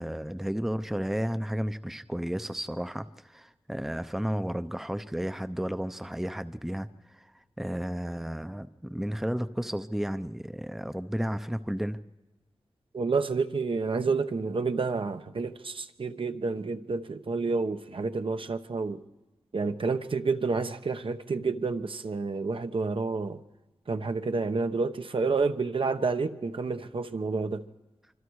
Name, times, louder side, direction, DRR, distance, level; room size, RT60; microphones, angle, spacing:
voice 1, 0.0-6.9 7.1-7.3 7.6-12.0, equal, 5° right, 0.7 m, -32 dB
voice 2, 12.9-19.0 19.5-23.4 23.9-27.6, right 4 dB, 60° right, 1.0 m, -29 dB
25.5 x 25.5 x 4.8 m
wide cardioid pair, 80°, 10 cm